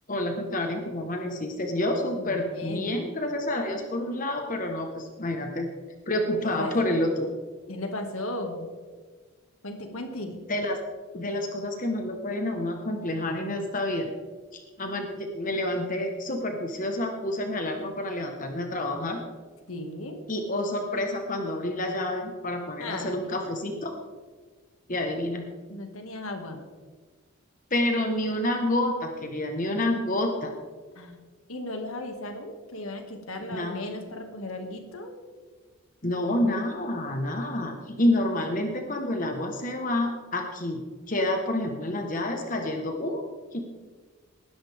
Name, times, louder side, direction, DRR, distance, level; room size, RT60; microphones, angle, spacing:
voice 1, 0.1-5.7 6.1-7.3 10.5-10.8 11.1-14.1 14.5-19.2 20.3-23.9 24.9-25.4 27.7-30.5 33.4-33.8 36.0-43.2 43.5-43.6, left 1 dB, 35° left, 3 dB, 1.3 m, -28 dB
voice 2, 2.1-2.9 6.3-7.0 7.7-8.7 9.6-10.4 19.7-20.2 22.8-23.2 25.7-26.7 31.0-31.2 31.5-35.1, left 1 dB, 75° left, 4 dB, 2.1 m, -36 dB
20.0 x 11.0 x 3.6 m, 1.5 s
head